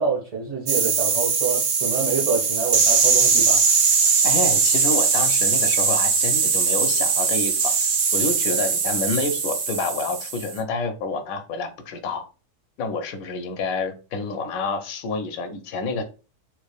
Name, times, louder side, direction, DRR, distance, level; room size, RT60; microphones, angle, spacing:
voice 1, 0.0-3.6, right 5 dB, 30° right, -5 dB, 0.9 m, -26 dB
sound 1, 0.7-10.5, right 5 dB, 60° right, 0.7 m, -20 dB
voice 2, 4.2-12.2 12.8-16.0, left 3 dB, 90° left, 7 dB, 1.0 m, -28 dB
3.3 x 3.0 x 2.3 m, 0.34 s
omnidirectional pair, 1.4 m